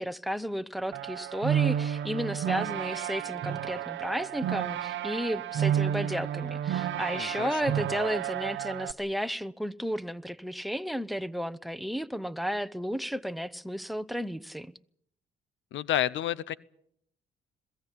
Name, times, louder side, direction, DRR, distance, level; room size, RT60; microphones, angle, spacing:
voice 1, 0.0-14.7, equal, ahead, 0.9 m, -33 dB
sound 1, 0.9-8.9, right 10 dB, 70° right, 1.1 m, -31 dB
voice 2, 7.1-7.7 15.7-16.6, left 12 dB, 70° left, 0.9 m, -30 dB
22.0 x 16.0 x 10.0 m
cardioid pair, 90°, 20 cm